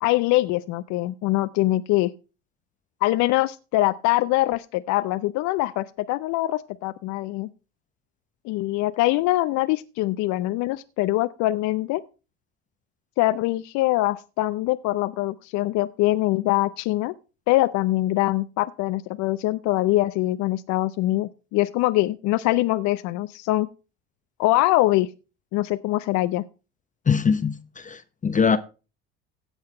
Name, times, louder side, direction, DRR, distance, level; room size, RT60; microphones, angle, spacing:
voice 1, 0.0-2.1 3.0-7.5 8.4-12.0 13.2-17.1 17.5-23.7 24.4-25.1 25.5-26.4, left 17 dB, 60° left, 0.6 m, -23 dB
voice 2, 27.1-28.6, left 6 dB, 25° left, 0.8 m, -22 dB
16.0 x 5.7 x 4.3 m
hypercardioid pair, 65°, 33 cm